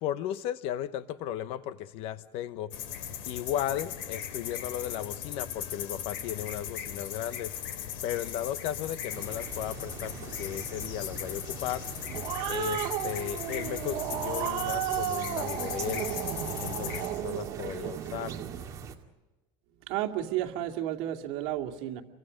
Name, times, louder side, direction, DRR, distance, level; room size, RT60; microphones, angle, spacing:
voice 1, 0.0-2.8 3.3-7.5 8.0-11.8 12.5-16.1 16.6-18.4, left 11 dB, 55° left, 13 dB, 1.0 m, -35 dB
sound 1, 2.7-17.1, left 9 dB, 85° left, 2.9 m, -38 dB
sound 2, 9.1-19.0, right 7 dB, 30° right, 2.2 m, -43 dB
Growling, 11.8-18.6, right 13 dB, 50° right, 1.4 m, -34 dB
voice 2, 19.9-22.0, right 12 dB, 65° right, 3 dB, 2.4 m, -32 dB
29.5 x 23.5 x 5.2 m, 1.1 s
cardioid pair, 150°, 11 cm